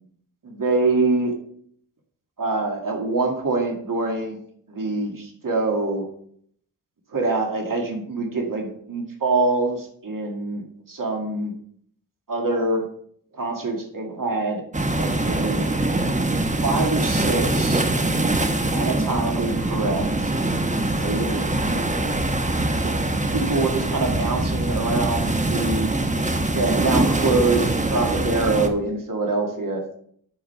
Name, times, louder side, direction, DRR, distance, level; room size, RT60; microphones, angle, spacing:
voice 1, 0.4-1.3 2.4-4.4 4.7-6.1 7.1-11.5 12.3-12.9 13.3-14.6 15.0-15.7 16.6-17.8 18.7-20.3 20.7-21.8 22.8-25.9 26.5-27.6 27.9-29.8, right 3 dB, 60° right, 2 dB, 2.1 m, -25 dB
sound 1, 14.7-28.7, right 2 dB, 20° right, 1.1 m, -23 dB
8.9 x 6.6 x 5.6 m, 0.63 s
wide cardioid pair, 85°, 37 cm